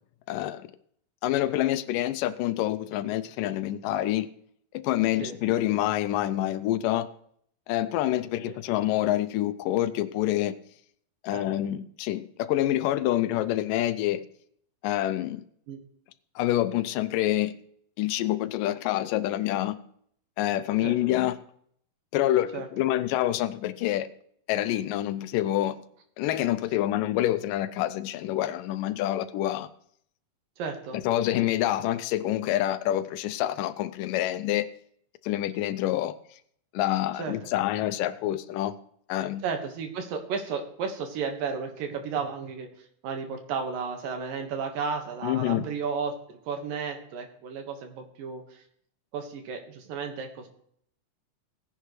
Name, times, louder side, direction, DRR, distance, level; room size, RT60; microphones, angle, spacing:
voice 1, 0.3-0.7 1.2-4.3 4.7-7.1 7.7-10.6 11.2-14.2 14.8-15.4 16.4-17.6 18.0-19.8 20.4-21.4 22.1-24.1 24.5-25.8 26.2-29.7 30.9-34.7 35.2-36.2 36.7-38.8 39.1-39.4 45.2-45.6, left 13 dB, 80° left, 13 dB, 2.1 m, -27 dB
voice 2, 30.6-31.0 37.1-37.4 39.4-48.6 49.1-50.5, right 5 dB, 75° right, 5 dB, 3.1 m, -33 dB
17.5 x 10.0 x 3.2 m, 0.65 s
omnidirectional pair, 4.2 m